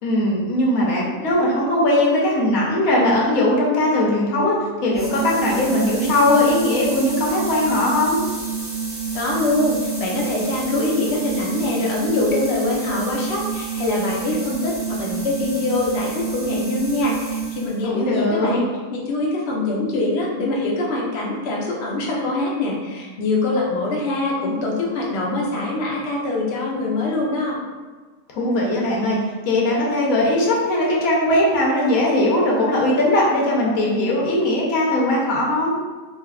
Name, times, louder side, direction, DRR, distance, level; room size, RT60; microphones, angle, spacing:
voice 1, 0.0-4.6 4.8-8.2 17.9-18.6 28.3-35.7, left 1 dB, 85° left, -3 dB, 1.2 m, -19 dB
sound 1, 4.9-17.9, right 6 dB, 20° right, 0.3 m, -28 dB
voice 2, 9.1-18.7 18.9-27.6, left 2 dB, 60° left, -3 dB, 0.8 m, -24 dB
3.4 x 2.7 x 2.2 m, 1.4 s
omnidirectional pair, 1.4 m